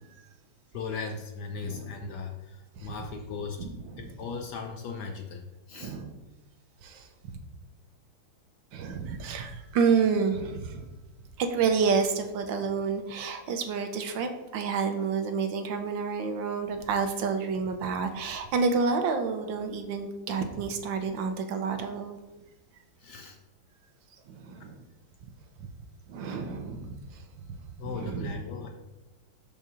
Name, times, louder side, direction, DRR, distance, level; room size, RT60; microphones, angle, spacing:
voice 1, 0.7-3.7 4.0-6.0 23.0-23.4 24.6-24.7 27.8-28.7, left 5 dB, 70° left, 3 dB, 1.1 m, -38 dB
voice 2, 3.6-4.0 5.7-6.1 6.8-7.4 8.7-10.9 11.4-22.2 24.3-24.8 25.2-25.3 26.1-27.6 27.9-28.3, right 5 dB, 70° right, 6 dB, 1.3 m, -29 dB
5.5 x 4.4 x 6.1 m, 1.1 s
omnidirectional pair, 2.3 m